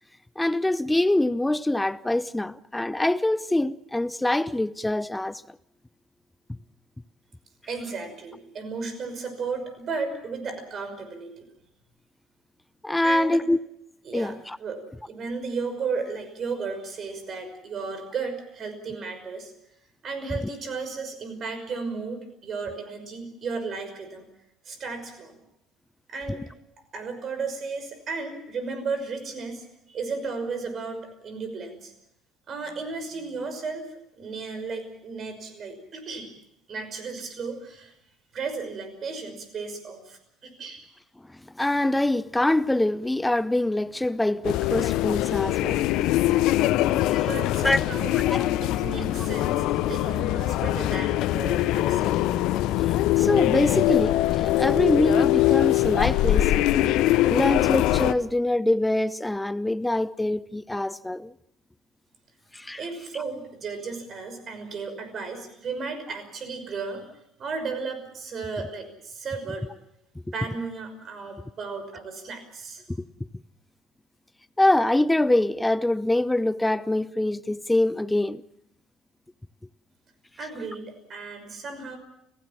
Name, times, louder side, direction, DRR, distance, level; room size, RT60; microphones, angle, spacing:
voice 1, 0.4-5.4 12.8-13.6 14.1-14.6 41.3-45.8 46.2-46.3 46.9-47.3 47.6-47.8 48.1-48.5 52.9-56.7 57.3-61.3 62.5-62.8 72.9-73.0 74.6-78.4, left 1 dB, 10° left, 0.8 m, -24 dB
voice 2, 7.7-11.4 13.0-13.4 14.1-19.5 20.0-24.3 24.6-25.3 26.1-26.4 26.9-31.9 32.5-33.9 34.2-36.3 36.7-37.9 38.3-40.9 47.2-48.1 48.6-52.2 62.7-67.0 67.4-69.7 70.3-72.8 80.4-82.0, right 4 dB, 45° right, 5.7 m, -34 dB
sound 1, 44.4-58.1, left 15 dB, 60° left, 0.8 m, -23 dB
29.5 x 16.5 x 7.5 m
figure-of-eight pair, 55°, 0 cm